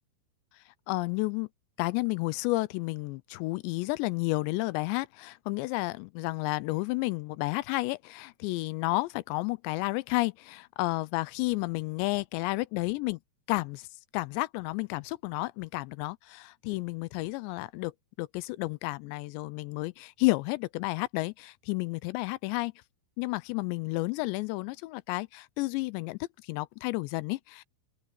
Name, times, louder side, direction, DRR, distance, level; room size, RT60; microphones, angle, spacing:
voice 1, 0.9-1.5 1.8-13.2 13.5-13.9 14.1-17.9 18.2-22.7 23.2-27.6, left 22 dB, 85° left, 2.8 m, -31 dB
open air
omnidirectional pair, 5.2 m